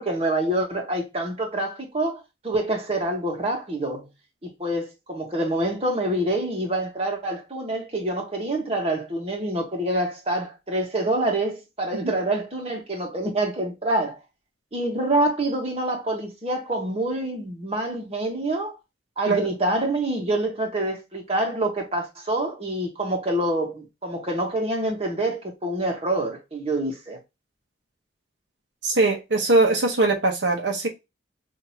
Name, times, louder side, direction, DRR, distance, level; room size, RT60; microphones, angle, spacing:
voice 1, 0.0-4.1 4.4-14.2 14.7-18.7 19.2-27.2, right 1 dB, 30° right, 1.3 m, -26 dB
voice 2, 28.8-30.9, right 3 dB, 70° right, 1.0 m, -21 dB
6.0 x 2.8 x 2.8 m
head